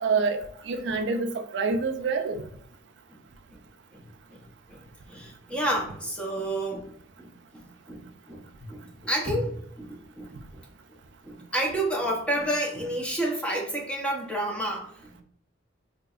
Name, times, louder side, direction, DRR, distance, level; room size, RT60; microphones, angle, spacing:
voice 1, 0.0-2.4, right 4 dB, 70° right, 6 dB, 0.4 m, -27 dB
voice 2, 3.9-4.8 5.1-6.9 7.2-10.6 11.2-15.2, right 1 dB, 5° left, -1 dB, 0.6 m, -31 dB
4.0 x 2.8 x 2.3 m, 0.65 s
head